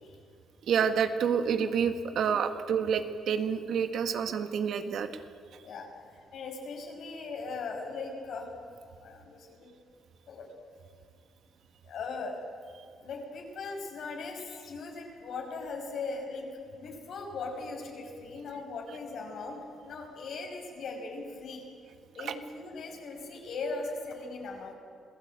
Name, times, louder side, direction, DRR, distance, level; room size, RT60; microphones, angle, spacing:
voice 1, 0.7-5.1 22.2-22.3, right 7 dB, 70° right, 8 dB, 1.7 m, -28 dB
voice 2, 5.6-8.5 9.0-9.7 10.3-10.5 11.8-12.4 13.0-16.5 16.7-21.6 22.1-24.7, left 3 dB, 70° left, 1 dB, 5.7 m, -39 dB
27.0 x 16.5 x 8.9 m, 2.3 s
cardioid pair, 90°, 0 cm